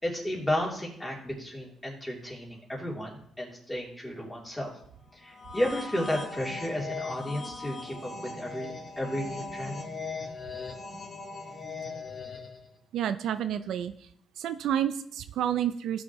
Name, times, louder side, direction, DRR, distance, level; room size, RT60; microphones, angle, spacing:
voice 1, 0.0-4.7 5.1-9.8, left 1 dB, 10° left, -2 dB, 3.0 m, -33 dB
sound 1, 5.3-12.7, left 3 dB, 45° left, 2.1 m, -39 dB
voice 2, 12.9-13.9 14.4-16.0, right 10 dB, 80° right, 12 dB, 0.4 m, -29 dB
16.5 x 6.2 x 3.1 m, 0.67 s
cardioid pair, 90°, 0 cm